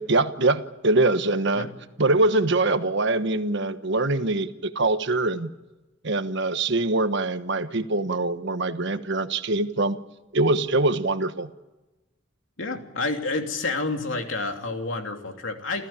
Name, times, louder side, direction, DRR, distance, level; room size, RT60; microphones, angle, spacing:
voice 1, 0.0-1.7 2.0-5.5 6.0-10.0 10.3-11.5, right 2 dB, 65° right, 10 dB, 1.3 m, -23 dB
voice 2, 12.6-15.9, left 3 dB, 70° left, 4 dB, 3.0 m, -29 dB
29.0 x 15.0 x 8.9 m, 1.1 s
head